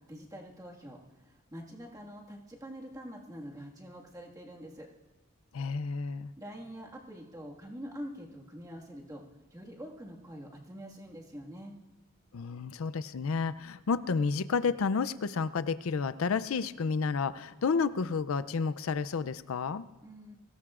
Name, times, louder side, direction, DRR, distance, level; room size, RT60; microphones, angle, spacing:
voice 1, 0.0-4.9 6.4-9.2 9.5-11.7 20.0-20.3, equal, 15° right, -2 dB, 1.8 m, -45 dB
voice 2, 5.5-6.3 12.3-19.8, left 5 dB, 80° left, 15 dB, 0.5 m, -31 dB
23.0 x 18.0 x 2.5 m, 1.2 s
head